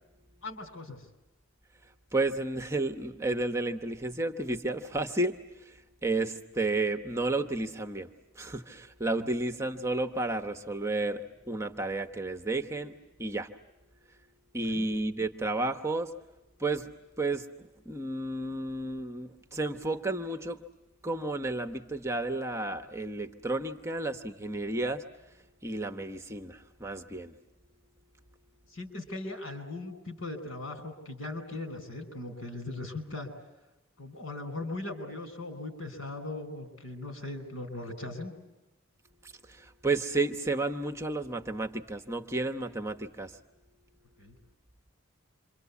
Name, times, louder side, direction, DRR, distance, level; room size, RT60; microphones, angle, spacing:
voice 1, 0.4-1.0 9.2-9.3 14.7-14.9 28.7-33.3 34.0-38.3 44.2-44.3, left 2 dB, 70° left, 7 dB, 5.0 m, -39 dB
voice 2, 2.1-8.1 8.4-13.5 14.5-16.1 16.6-16.9 17.2-20.6 21.0-25.0 25.6-27.3 39.2-43.4, right 2 dB, 15° right, 5 dB, 1.0 m, -32 dB
27.5 x 25.0 x 8.4 m, 1.0 s
head